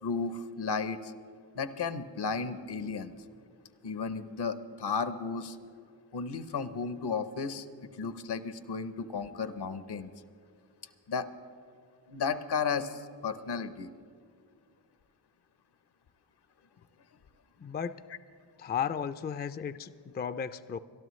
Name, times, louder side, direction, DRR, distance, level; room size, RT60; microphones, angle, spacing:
voice 1, 0.0-1.1 1.5-3.1 3.8-5.6 6.1-10.1 11.1-11.3 12.1-13.9, left 5 dB, 65° left, 12 dB, 0.8 m, -34 dB
voice 2, 17.6-18.0 18.6-20.8, left 7 dB, 25° left, 13 dB, 0.4 m, -34 dB
23.5 x 12.5 x 3.2 m, 2.3 s
cardioid pair, 65°, 42 cm